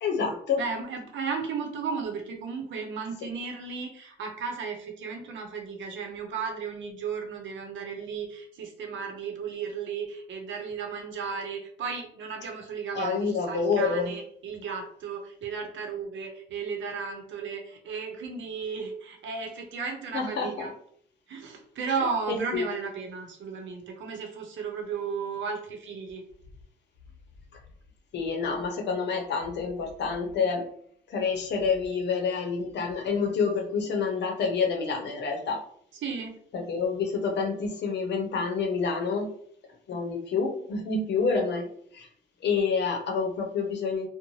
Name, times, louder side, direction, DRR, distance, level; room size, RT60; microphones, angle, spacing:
voice 1, 0.0-0.6 12.9-14.1 20.1-20.7 22.3-22.6 28.1-30.6 31.1-35.6 36.5-39.3 39.9-41.7 41.9-42.1 42.4-44.1, left 5 dB, 60° left, 2 dB, 0.7 m, -28 dB
voice 2, 0.6-20.7 21.3-26.3 35.9-36.4, right 5 dB, 70° right, 3 dB, 0.7 m, -34 dB
2.6 x 2.1 x 3.0 m, 0.65 s
cardioid pair, 90°, 20 cm